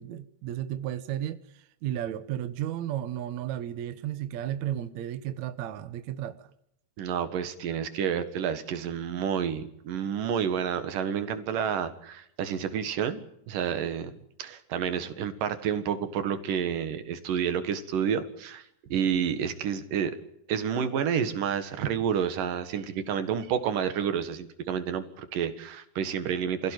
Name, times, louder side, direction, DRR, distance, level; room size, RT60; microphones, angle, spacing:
voice 1, 0.0-6.5, right 11 dB, 70° right, 2.2 m, -34 dB
voice 2, 7.0-14.1 14.4-18.7 18.9-20.1 20.5-26.7, right 8 dB, 85° right, 3.3 m, -29 dB
26.5 x 16.5 x 9.2 m
omnidirectional pair, 3.7 m